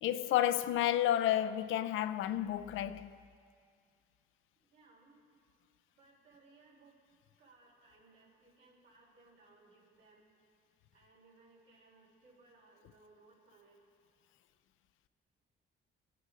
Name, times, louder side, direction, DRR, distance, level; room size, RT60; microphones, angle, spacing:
voice 1, 0.0-3.2, left 12 dB, 80° left, 0.5 m, -31 dB
voice 2, 4.6-5.2 5.9-7.0 7.4-10.3 10.9-13.8, right 3 dB, 80° right, 4.2 m, -63 dB
22.5 x 9.4 x 3.8 m
cardioid pair, 90°, 20 cm